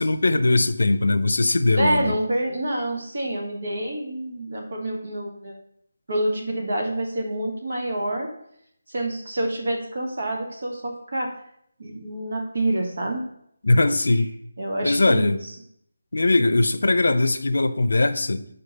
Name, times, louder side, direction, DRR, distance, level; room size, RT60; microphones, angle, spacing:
voice 1, 0.0-2.1 13.6-14.3 14.8-15.4 16.1-18.5, left 2 dB, 80° left, 11 dB, 0.5 m, -20 dB
voice 2, 1.8-5.5 6.1-8.3 8.9-11.3 11.8-13.2 14.6-15.4, right 1 dB, 55° right, 1 dB, 1.5 m, -27 dB
5.1 x 4.4 x 5.4 m, 0.71 s
figure-of-eight pair, 175°, 0 cm